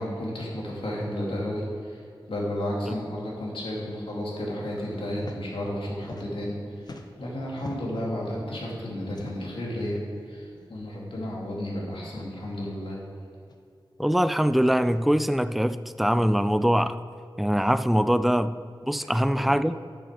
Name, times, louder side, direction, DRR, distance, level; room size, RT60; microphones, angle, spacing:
voice 1, 0.0-10.0 10.3-13.0 19.3-19.5, left 1 dB, 85° left, -4 dB, 2.4 m, -32 dB
sound 1, 5.1-5.4 5.7-6.5 6.8-8.1 9.1-9.6 10.5-10.7 11.0-11.1 12.0-12.3 13.5-13.6 14.7-15.0 16.1-16.4, left 3 dB, 50° left, 0.8 m, -44 dB
Bass guitar, 8.3-12.1, left 1 dB, 80° right, 2.1 m, -51 dB
voice 2, 14.0-17.0 17.4-18.5 18.8-19.8, equal, ahead, 12 dB, 0.3 m, -23 dB
8.2 x 6.7 x 6.5 m, 2.4 s
wide cardioid pair, 100°, 9 cm